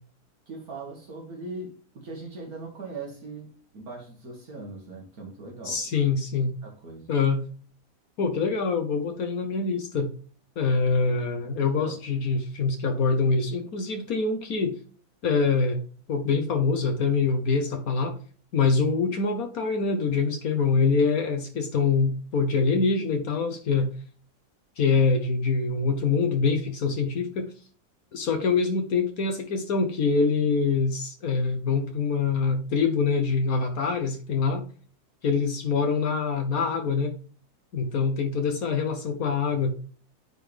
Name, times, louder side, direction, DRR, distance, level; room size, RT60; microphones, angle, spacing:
voice 1, 0.5-5.8 6.4-7.1 11.8-12.0, right 3 dB, 65° right, -1 dB, 2.0 m, -40 dB
voice 2, 5.6-6.5 7.1-7.4 8.2-10.1 10.6-14.8 15.2-15.8 16.1-18.2 18.5-23.9 24.8-27.5 28.1-34.6 35.2-37.1 37.7-39.7, left 4 dB, 65° left, 5 dB, 1.4 m, -25 dB
9.3 x 4.1 x 3.3 m, 0.42 s
omnidirectional pair, 1.7 m